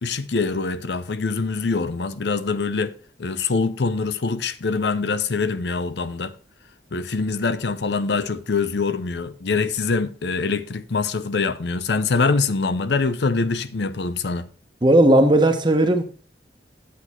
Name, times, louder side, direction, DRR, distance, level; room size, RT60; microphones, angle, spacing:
voice 1, 0.0-6.3 6.9-14.5, left 4 dB, 75° left, 0.6 m, -24 dB
voice 2, 14.8-16.0, right 1 dB, 25° right, 1.1 m, -16 dB
8.5 x 8.0 x 4.4 m
head